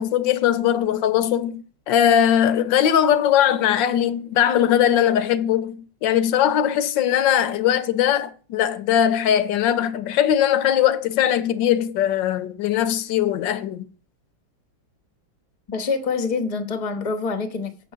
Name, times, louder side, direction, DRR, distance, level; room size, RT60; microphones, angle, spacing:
voice 1, 0.0-13.9, left 10 dB, 75° left, 1.4 m, -20 dB
voice 2, 15.7-17.9, left 4 dB, 30° left, 0.7 m, -26 dB
8.4 x 5.3 x 6.7 m
omnidirectional pair, 2.1 m